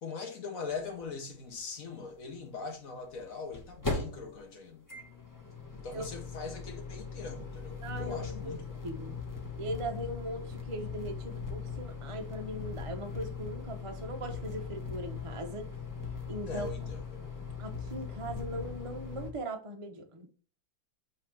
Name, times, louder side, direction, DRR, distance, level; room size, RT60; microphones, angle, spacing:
voice 1, 0.0-4.9 5.7-8.8 16.5-17.5, left 4 dB, 50° left, 1.2 m, -41 dB
using a microwave, 0.7-0.8 1.0-1.1 3.0-19.3, left 5 dB, 20° left, 0.5 m, -40 dB
voice 2, 7.8-8.6 8.8-9.2 9.6-15.7 16.3-16.7 17.6-20.3, right 1 dB, 40° right, 0.4 m, -39 dB
7.4 x 3.2 x 4.5 m
omnidirectional pair, 2.1 m